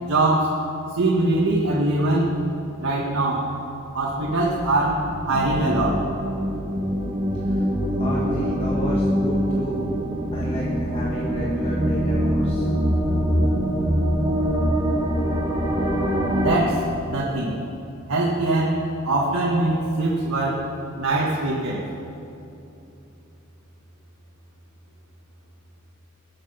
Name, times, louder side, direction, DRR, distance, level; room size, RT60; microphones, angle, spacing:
voice 1, 0.0-0.6 0.9-2.3 2.8-3.5 3.9-6.0 16.3-17.6 18.1-20.7 20.9-21.8, right 2 dB, 85° right, -3 dB, 1.6 m, -22 dB
sound 1, 4.1-16.6, equal, 20° right, 1.1 m, -24 dB
voice 2, 8.0-9.8 10.3-12.7, equal, 25° left, -5 dB, 1.4 m, -31 dB
20.0 x 7.5 x 5.7 m, 2.8 s
head